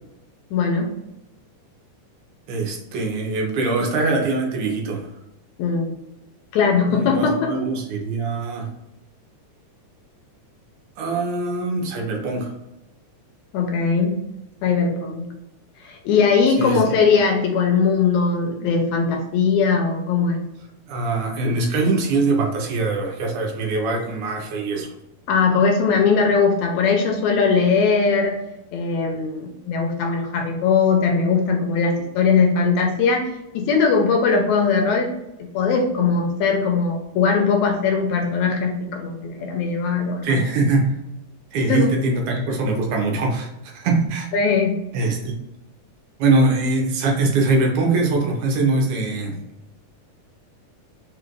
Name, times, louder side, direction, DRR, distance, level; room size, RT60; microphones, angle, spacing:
voice 1, 0.5-0.9 5.6-5.9 6.5-7.6 13.5-14.2 14.6-15.3 15.8-20.4 25.3-28.4 28.7-33.2 33.5-40.4 41.7-41.9 44.3-44.8, left 5 dB, 80° left, 2 dB, 1.8 m, -20 dB
voice 2, 2.5-5.1 6.9-8.7 11.0-12.5 16.5-16.8 20.9-24.9 40.2-40.9 41.5-44.3 44.9-45.4 46.2-49.4, right 3 dB, 80° right, 0 dB, 2.2 m, -22 dB
5.0 x 2.5 x 3.0 m, 0.93 s
omnidirectional pair, 3.7 m